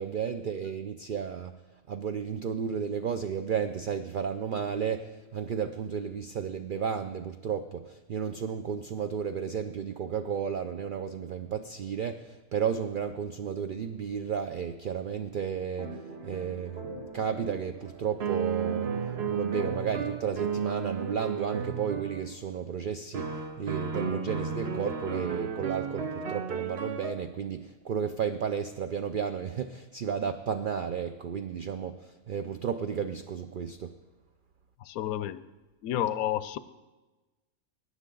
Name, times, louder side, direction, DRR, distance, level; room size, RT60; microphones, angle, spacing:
voice 1, 0.0-1.5 1.9-16.0 16.2-18.9 19.3-33.9, right 7 dB, 90° right, 9 dB, 0.4 m, -33 dB
sound 1, 15.8-21.4, right 2 dB, 35° right, 1.5 m, -44 dB
sound 2, 18.2-22.3 23.1-27.1, right 6 dB, 50° right, 1.0 m, -33 dB
voice 2, 34.8-35.4 35.8-36.6, left 12 dB, 85° left, 15 dB, 1.0 m, -30 dB
17.5 x 9.9 x 3.9 m, 1.2 s
omnidirectional pair, 1.5 m